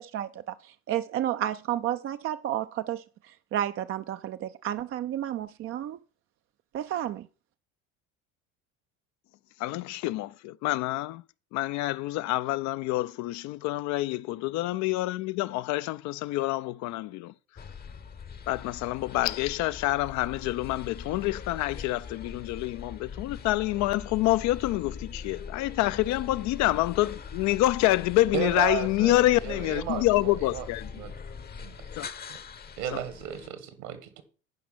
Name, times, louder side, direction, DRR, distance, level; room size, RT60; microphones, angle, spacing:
voice 1, 0.0-6.0 6.7-7.3, right 11 dB, 35° right, 0.5 m, -32 dB
voice 2, 9.6-11.2 11.5-17.3 18.5-30.9 32.0-32.1 32.9-33.0, left 17 dB, 45° left, 0.4 m, -27 dB
sound 1, 17.6-33.5, left 5 dB, 25° left, 0.8 m, -42 dB
voice 3, 28.3-30.7 30.9-31.1 31.6-31.8 32.3-32.4 32.8-34.2, right 10 dB, 65° right, 1.8 m, -34 dB
10.5 x 5.1 x 6.0 m
hypercardioid pair, 65°, 39 cm